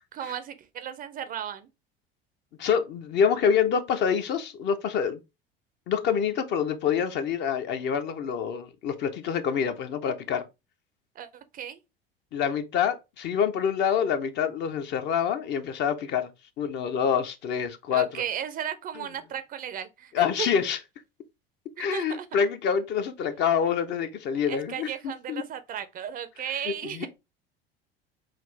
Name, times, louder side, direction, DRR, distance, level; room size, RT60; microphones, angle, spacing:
voice 1, 0.1-1.7 11.2-11.8 17.9-20.5 21.8-22.3 24.5-27.1, right 9 dB, 30° right, 0.5 m, -35 dB
voice 2, 2.6-5.2 5.9-10.4 12.3-16.3 16.6-18.2 20.1-20.8 21.8-25.4 26.7-27.1, left 7 dB, 35° left, 0.6 m, -26 dB
5.7 x 2.5 x 3.2 m
figure-of-eight pair, 65°, 30 cm